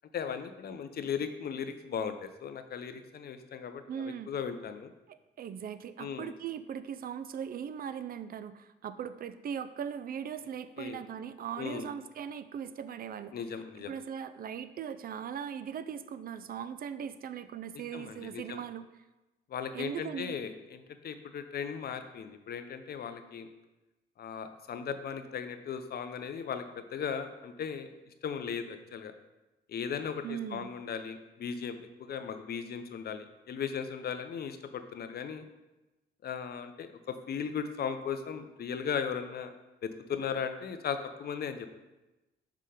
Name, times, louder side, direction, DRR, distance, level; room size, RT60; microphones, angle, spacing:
voice 1, 0.1-4.9 6.0-6.3 10.8-11.0 11.6-11.9 13.3-13.9 17.7-18.6 19.5-23.5 24.2-27.9 28.2-29.1 29.7-35.4 36.2-39.5 39.8-41.7, left 7 dB, 50° left, 9 dB, 0.6 m, -37 dB
voice 2, 3.9-4.3 5.1-13.3 13.9-18.8 19.7-20.4 30.2-30.7, right 8 dB, 50° right, 13 dB, 0.4 m, -39 dB
5.7 x 3.7 x 4.9 m, 1.0 s
cardioid pair, 90°, 20 cm